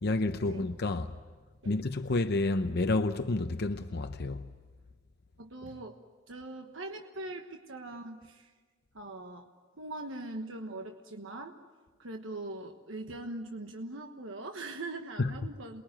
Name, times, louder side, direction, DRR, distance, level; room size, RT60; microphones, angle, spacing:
voice 1, 0.0-1.1 1.7-4.4 15.2-15.3, left 2 dB, 50° left, 0.7 m, -30 dB
voice 2, 5.4-6.0 6.3-8.5 8.9-9.5 9.8-11.6 12.0-15.8, right 2 dB, 70° right, 1.3 m, -41 dB
28.0 x 21.0 x 9.0 m
head